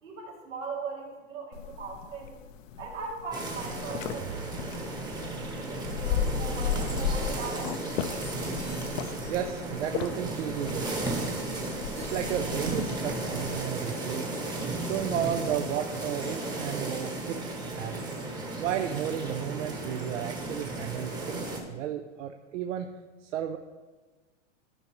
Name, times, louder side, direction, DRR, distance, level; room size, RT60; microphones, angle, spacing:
voice 1, 0.0-2.3 2.8-4.9 5.3-8.3, right 4 dB, 90° right, -3 dB, 2.8 m, -40 dB
sound 1, 1.5-13.6, left 7 dB, 85° left, 0.7 m, -36 dB
sound 2, 3.3-21.6, right 2 dB, 10° right, 1.0 m, -34 dB
sound 3, 8.2-9.3 11.1-11.6 12.0-12.4, left 3 dB, 5° left, 0.6 m, -49 dB
voice 2, 9.3-11.4 12.0-14.3 14.8-18.1 18.6-22.9 23.2-23.6, right 10 dB, 75° right, 6 dB, 0.6 m, -33 dB
13.0 x 5.4 x 3.1 m, 1.3 s
supercardioid pair, 145°, 38 cm